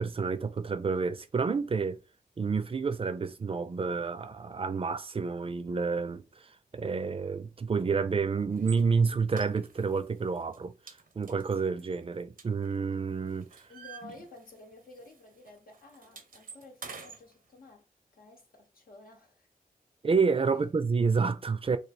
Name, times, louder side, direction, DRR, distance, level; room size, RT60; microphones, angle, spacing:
voice 1, 0.0-2.0 2.4-10.7 11.2-13.7 20.0-21.8, right 5 dB, 40° right, 0.4 m, -29 dB
sound 1, 8.6-8.8 9.3-10.0 10.4-10.6 10.9-12.9 13.2-14.7 15.0-15.2 15.5-17.2, right 5 dB, 75° right, 0.7 m, -47 dB
voice 2, 13.7-17.9 18.1-19.5, left 2 dB, 80° left, 0.8 m, -52 dB
3.3 x 2.4 x 4.1 m
wide cardioid pair, 95°, 15 cm